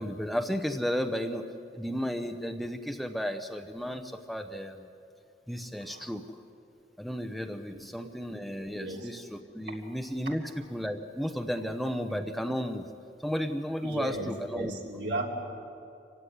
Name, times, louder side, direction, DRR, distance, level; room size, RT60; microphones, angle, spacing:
voice 1, 0.0-1.4 1.7-4.9 5.5-6.2 7.0-12.8 13.2-14.7, equal, ahead, 7 dB, 0.7 m, -33 dB
voice 2, 7.7-8.1 8.7-9.1 13.8-14.3 14.5-15.3, right 2 dB, 70° right, 0 dB, 3.5 m, -36 dB
26.5 x 16.0 x 9.9 m, 2.6 s
head